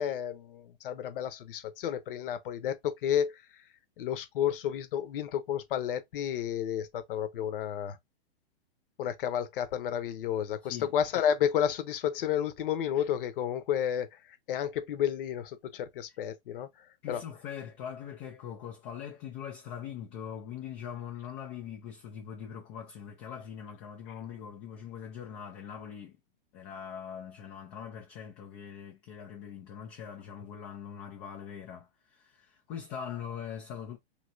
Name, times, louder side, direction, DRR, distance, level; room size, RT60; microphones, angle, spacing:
voice 1, 0.0-3.3 4.0-8.0 9.0-14.1 14.5-16.7 17.1-17.2, left 9 dB, 60° left, 0.8 m, -31 dB
voice 2, 17.0-26.2 26.5-34.0, left 8 dB, 15° left, 0.3 m, -42 dB
3.2 x 2.8 x 2.5 m
hypercardioid pair, 145°, 31 cm